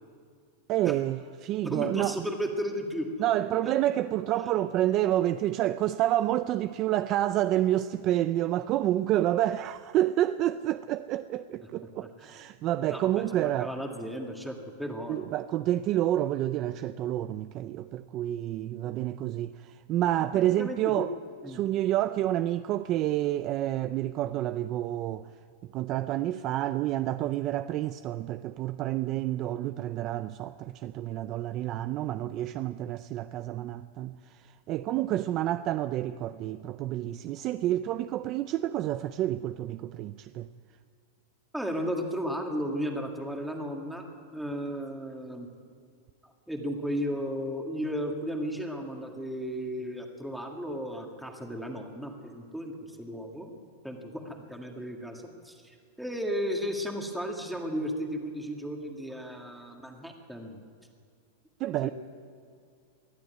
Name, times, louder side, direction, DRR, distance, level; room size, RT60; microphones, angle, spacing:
voice 1, 0.7-2.3 3.2-13.8 15.1-21.2 21.4-25.3 25.7-40.5 61.6-61.9, right 13 dB, 30° right, 0.4 m, -29 dB
voice 2, 1.6-3.1 3.7-3.8 12.2-12.3 12.9-15.2 20.3-21.1 21.4-21.6 41.5-44.1 44.3-45.5 46.2-53.5 53.8-60.6 61.8-61.9, equal, ahead, 1.9 m, -34 dB
22.5 x 14.0 x 9.4 m
supercardioid pair, 165°, 0 cm